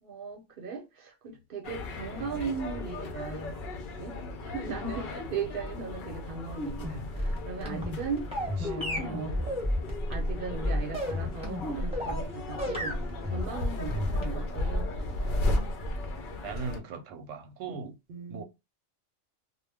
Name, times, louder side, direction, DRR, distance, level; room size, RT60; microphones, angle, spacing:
voice 1, 0.0-3.6 4.0-4.2 4.4-9.5 10.1-15.1 18.1-18.4, right 4 dB, 50° right, 0.8 m, -38 dB
sound 1, 1.6-16.8, left 1 dB, 60° left, 0.5 m, -35 dB
sound 2, 6.6-12.3 12.6-14.4, left 1 dB, 5° right, 0.7 m, -32 dB
voice 2, 16.4-17.9 18.3-18.4, right 5 dB, 85° right, 1.0 m, -39 dB
2.2 x 2.1 x 3.3 m
omnidirectional pair, 1.3 m